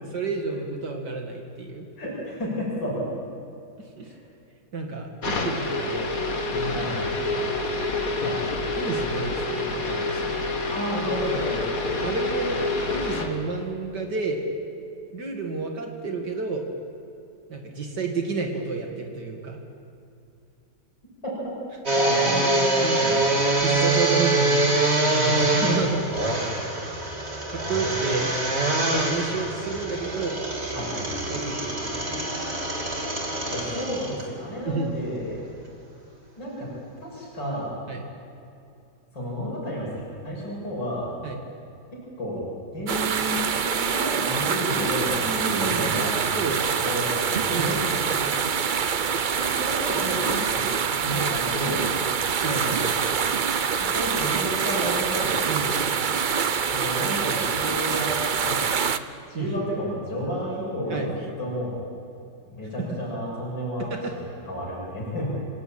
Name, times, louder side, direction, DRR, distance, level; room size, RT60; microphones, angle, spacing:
voice 1, 0.1-1.9 4.0-4.1 4.7-6.2 6.5-6.7 7.3-7.7 8.8-10.4 12.0-12.6 12.9-14.4 15.1-16.6 17.5-19.6 22.8-23.1 23.6-24.8 25.1-26.1 27.5-28.4 29.0-30.4 31.3-32.2 34.7-35.0 37.9-38.0 41.2-41.4 45.1-46.0 46.3-47.0 47.5-48.3 50.3-50.4 52.4-53.0 55.5-55.8 59.3-59.5 60.9-61.2 62.8-63.0 63.8-64.1, right 4 dB, 65° right, 2 dB, 2.8 m, -30 dB
voice 2, 2.0-3.1 4.0-4.2 6.7-7.1 8.2-8.4 10.7-11.6 21.2-21.5 21.9-23.3 30.7-31.3 33.5-35.4 36.4-36.7 37.0-37.8 39.1-39.9 40.2-41.1 41.9-42.5 42.7-46.2 46.8-47.9 49.4-50.6 51.0-52.1 53.8-55.3 56.7-58.6 59.3-61.8 62.5-65.3, equal, 80° left, -5 dB, 7.6 m, -31 dB
sound 1, 5.2-13.3, left 2 dB, 50° left, 2.4 m, -27 dB
sound 2, 21.9-34.2 34.7-34.8 35.3-35.4, right 2 dB, 35° right, 3.1 m, -24 dB
sound 3, 42.9-59.0, right 6 dB, 90° right, 0.4 m, -25 dB
27.5 x 17.5 x 8.8 m, 2.6 s
omnidirectional pair, 1.9 m